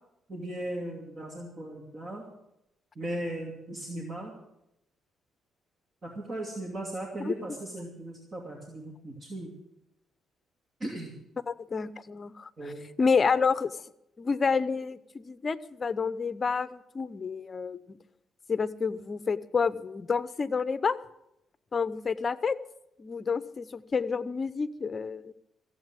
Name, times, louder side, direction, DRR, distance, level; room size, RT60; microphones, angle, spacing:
voice 1, 0.3-2.2 3.0-4.3 6.0-9.5 10.8-11.1 12.6-12.9, right 1 dB, 35° right, 0 dB, 2.7 m, -37 dB
voice 2, 11.5-13.7 14.2-18.0 18.5-21.0 21.7-22.6 23.0-25.3, left 5 dB, 35° left, 16 dB, 0.7 m, -29 dB
15.0 x 8.2 x 8.9 m, 0.84 s
cardioid pair, 90°, 0 cm